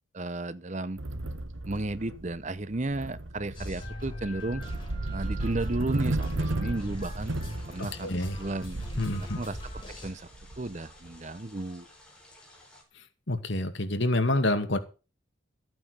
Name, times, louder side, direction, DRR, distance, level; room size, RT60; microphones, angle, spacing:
voice 1, 0.1-1.0 1.7-4.6 5.1-7.3 7.7-8.1 8.4-8.8 9.1-9.6 9.9-10.3 10.6-11.9, right 2 dB, 35° right, 0.8 m, -33 dB
sound 1, 1.0-11.2, right 2 dB, 75° right, 1.5 m, -35 dB
sound 2, 3.5-10.1, left 1 dB, 20° left, 7.6 m, -42 dB
sound 3, 6.7-12.8, left 1 dB, 5° left, 4.6 m, -55 dB
voice 2, 8.0-8.4 9.0-9.4 13.0-14.8, left 1 dB, 65° left, 2.1 m, -28 dB
14.5 x 9.0 x 6.7 m
head